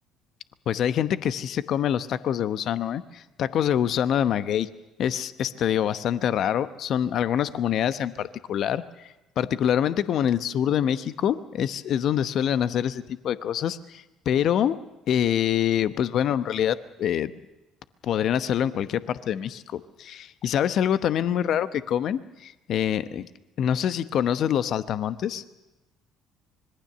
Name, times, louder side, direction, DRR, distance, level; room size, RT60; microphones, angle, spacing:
voice 1, 0.7-4.7 5.0-9.1 9.4-14.8 15.1-17.3 18.0-23.3 23.6-25.4, left 9 dB, 55° left, 13 dB, 0.9 m, -25 dB
25.0 x 22.0 x 6.8 m, 0.98 s
hypercardioid pair, 55°, 0 cm